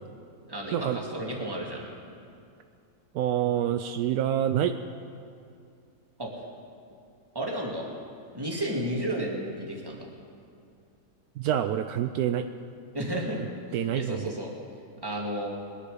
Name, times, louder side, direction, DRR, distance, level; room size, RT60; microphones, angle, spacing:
voice 1, 0.5-1.8 6.2-6.3 7.3-7.9 8.3-10.1 12.9-14.5 15.0-15.5, right 1 dB, 15° right, -1 dB, 2.1 m, -32 dB
voice 2, 3.1-4.8 11.4-12.5 13.7-14.3, right 10 dB, 80° right, 8 dB, 1.1 m, -27 dB
21.5 x 10.5 x 5.0 m, 2.4 s
omnidirectional pair, 1.7 m